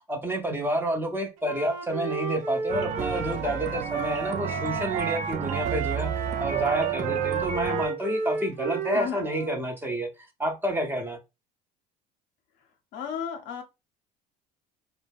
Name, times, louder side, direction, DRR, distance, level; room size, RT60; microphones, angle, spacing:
voice 1, 0.0-6.1 6.4-10.1 10.4-11.2, right 1 dB, 10° right, 0.7 m, -29 dB
Wind instrument woodwind instrument, 1.4-5.2 5.5-9.6, right 5 dB, 65° right, 0.8 m, -32 dB
sound 1, 2.7-7.9, right 7 dB, 35° right, 0.4 m, -32 dB
voice 2, 3.4-3.8 8.9-9.3 12.9-13.6, left 7 dB, 60° left, 0.7 m, -34 dB
2.2 x 2.0 x 3.4 m
hypercardioid pair, 70°, 21 cm